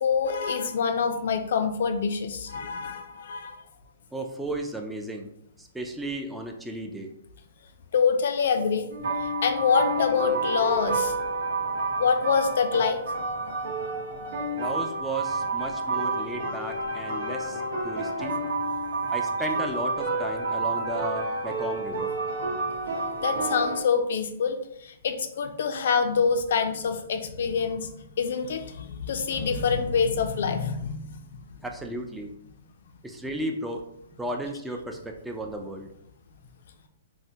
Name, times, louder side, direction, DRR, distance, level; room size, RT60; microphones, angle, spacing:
voice 1, 0.0-3.6 7.9-8.9 9.2-11.1 12.0-13.0 23.2-27.9 28.2-31.2 31.5-31.6, left 6 dB, 65° left, 7 dB, 0.4 m, -26 dB
voice 2, 4.1-5.3 5.6-7.1 14.6-18.4 19.1-22.1 31.6-32.3 33.0-33.8 34.2-35.9, right 1 dB, 5° right, 2 dB, 0.3 m, -34 dB
sound 1, 8.9-23.8, right 3 dB, 70° right, 0.8 m, -29 dB
sound 2, 29.3-31.8, right 3 dB, 25° right, 1.0 m, -39 dB
3.3 x 2.1 x 2.7 m, 0.76 s
hypercardioid pair, 150°, 0 cm